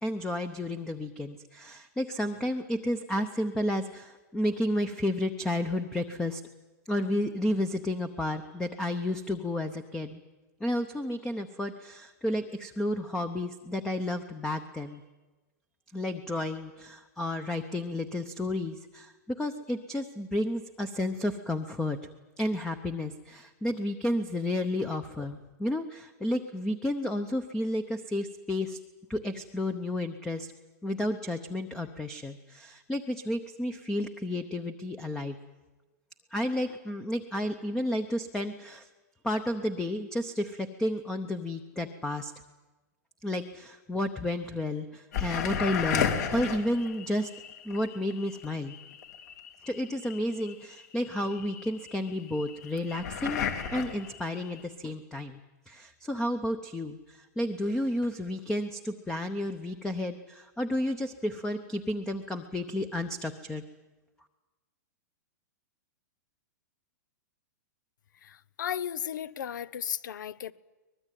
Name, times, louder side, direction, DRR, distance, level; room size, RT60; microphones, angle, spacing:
voice 1, 0.0-6.4 6.9-10.2 10.6-15.0 15.9-22.0 22.4-28.8 29.1-30.5 30.8-35.4 36.3-38.9 39.2-42.3 43.2-47.3 47.6-48.7 49.7-53.5 53.7-55.4 55.7-63.6, left 1 dB, 5° left, 0.7 m, -31 dB
sound 1, 45.1-54.6, left 7 dB, 60° left, 3.1 m, -34 dB
voice 2, 68.3-70.5, left 9 dB, 85° left, 0.9 m, -35 dB
23.5 x 20.0 x 9.2 m
supercardioid pair, 160°, 10 cm